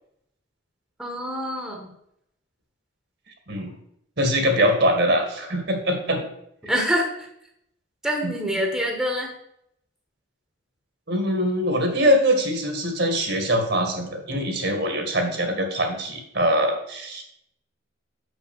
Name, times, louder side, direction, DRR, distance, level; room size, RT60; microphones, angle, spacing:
voice 1, 1.0-1.9 6.6-7.3 8.0-9.3, equal, ahead, 0 dB, 1.6 m, -26 dB
voice 2, 4.2-6.2 8.2-8.3 11.1-17.2, equal, 60° right, 3 dB, 2.1 m, -23 dB
6.7 x 6.3 x 7.4 m, 0.74 s
head